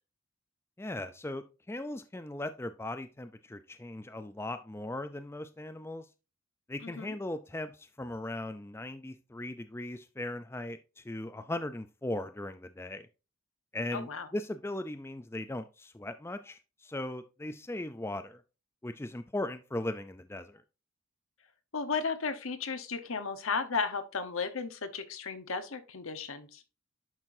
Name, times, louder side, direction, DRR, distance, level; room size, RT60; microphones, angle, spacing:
voice 1, 0.8-6.1 6.7-13.1 13.7-18.4 18.8-20.6, left 1 dB, 10° left, 9 dB, 0.4 m, -38 dB
voice 2, 6.8-7.2 13.9-14.3 21.7-26.6, left 5 dB, 70° left, 10 dB, 1.0 m, -34 dB
10.5 x 5.8 x 2.6 m, 0.30 s
head